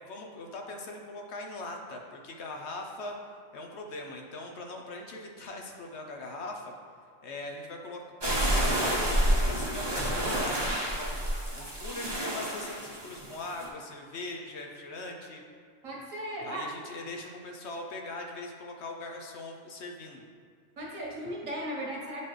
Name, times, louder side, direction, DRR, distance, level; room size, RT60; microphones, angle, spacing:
voice 1, 0.0-3.2 3.5-6.7 7.2-15.4 16.4-20.2, left 2 dB, 60° left, 1 dB, 0.9 m, -41 dB
sound 1, 8.2-13.7, right 1 dB, 20° right, 0.8 m, -29 dB
voice 2, 15.8-16.6 20.8-22.2, right 1 dB, 80° right, -3 dB, 1.7 m, -36 dB
8.8 x 4.3 x 3.2 m, 2.1 s
omnidirectional pair, 1.4 m